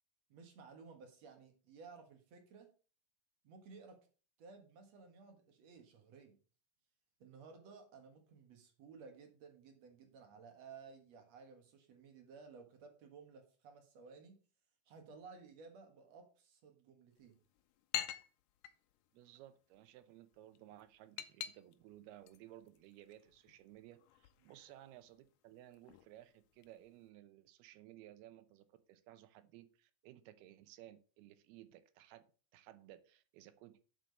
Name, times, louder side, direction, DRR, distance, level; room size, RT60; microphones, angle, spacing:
voice 1, 0.3-2.7 3.4-4.0 4.4-6.4 7.2-14.4 14.9-17.4 24.4-24.6, right 5 dB, 55° right, 5 dB, 2.4 m, -57 dB
sound 1, 17.1-27.1, left 12 dB, 80° left, 1.9 m, -50 dB
voice 2, 19.1-32.3 32.5-33.8, right 13 dB, 90° right, 12 dB, 2.8 m, -58 dB
7.6 x 6.8 x 5.4 m, 0.38 s
omnidirectional pair, 4.4 m